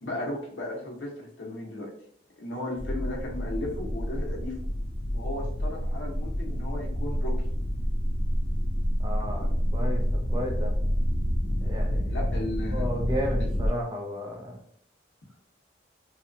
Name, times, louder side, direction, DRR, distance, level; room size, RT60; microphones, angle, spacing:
voice 1, 0.0-1.9 2.4-4.5 5.1-7.3 9.4-9.6 12.1-12.9, left 1 dB, 85° left, -1 dB, 0.8 m, -35 dB
sound 1, 2.8-13.7, equal, 35° left, 0.4 m, -28 dB
voice 2, 9.0-9.5 9.7-10.8 11.6-12.2 12.7-14.6, equal, 20° right, 1 dB, 0.5 m, -33 dB
2.8 x 2.3 x 2.5 m, 0.64 s
head